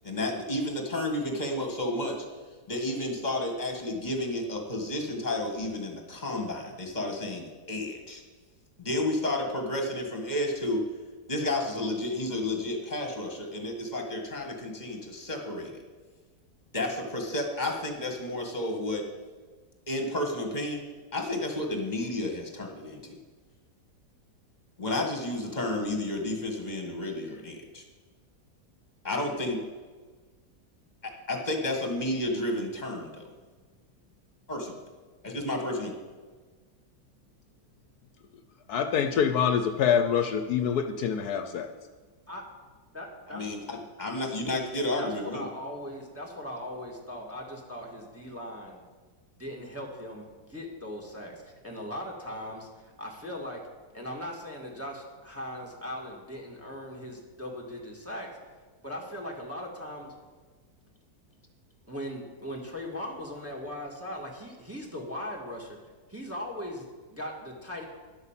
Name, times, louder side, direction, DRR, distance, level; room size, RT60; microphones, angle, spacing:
voice 1, 0.0-2.3 2.7-8.2 8.8-10.8 11.3-15.8 16.7-19.1 19.9-20.8 21.1-23.2 24.8-27.8 29.0-29.6 31.0-33.3 34.5-34.8 35.2-35.9 43.3-45.5, left 1 dB, 25° left, 2 dB, 1.9 m, -31 dB
voice 2, 38.7-41.7, left 7 dB, 70° left, 7 dB, 1.2 m, -25 dB
voice 3, 42.9-43.5 45.0-48.9 49.4-53.6 53.9-58.3 58.8-60.1 61.9-65.8 66.1-67.8, left 1 dB, 10° right, -1 dB, 1.8 m, -39 dB
11.0 x 8.1 x 7.4 m, 1.4 s
omnidirectional pair, 1.8 m